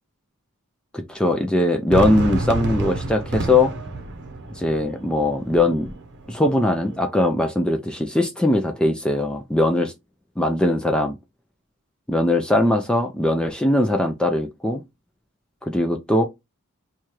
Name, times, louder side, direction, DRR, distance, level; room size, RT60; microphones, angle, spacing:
voice 1, 0.9-3.7 4.6-5.9 6.3-9.9 10.4-11.2 12.1-14.8 15.7-16.2, left 1 dB, 5° left, 0.3 m, -20 dB
Fireworks, 1.9-7.0, right 2 dB, 55° right, 0.8 m, -29 dB
4.5 x 2.3 x 2.9 m
head